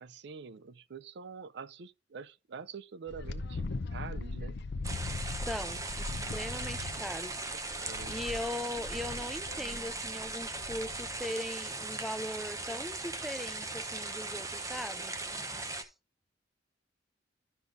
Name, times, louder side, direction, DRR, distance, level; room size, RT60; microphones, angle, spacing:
voice 1, 0.0-4.6 7.0-7.4 7.8-8.2, right 5 dB, 65° right, 0.5 m, -46 dB
Wind, 3.1-11.2, left 3 dB, 65° left, 0.6 m, -40 dB
sound 1, 4.8-15.8, right 3 dB, 20° right, 0.9 m, -39 dB
voice 2, 5.3-7.4 8.0-15.1 15.7-15.9, left 1 dB, ahead, 0.3 m, -39 dB
12.0 x 5.5 x 2.6 m
head